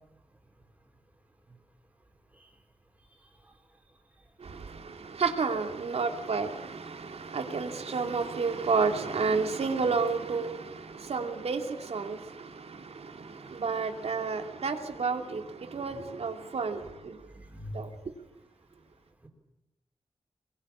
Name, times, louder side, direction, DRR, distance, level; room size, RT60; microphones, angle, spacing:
voice 1, 4.4-17.2 17.7-17.9, right 4 dB, 75° right, 2.8 m, -31 dB
voice 2, 17.3-17.8 19.2-19.3, left 1 dB, 15° right, 4.1 m, -42 dB
25.0 x 22.5 x 8.6 m
wide cardioid pair, 145°, 11 cm